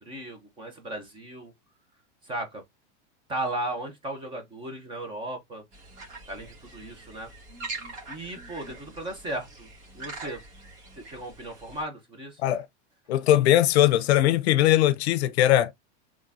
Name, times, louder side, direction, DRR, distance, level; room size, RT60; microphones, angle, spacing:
voice 1, 0.0-1.5 2.2-2.6 3.3-5.6 6.3-7.3 8.1-9.7 9.9-10.4 11.0-12.4, right 1 dB, 15° right, 0.8 m, -36 dB
sound 1, 5.7-11.8, right 3 dB, 40° right, 1.8 m, -43 dB
voice 2, 13.1-15.7, left 13 dB, 65° left, 0.7 m, -20 dB
3.6 x 3.6 x 2.6 m
supercardioid pair, 165°, 35 cm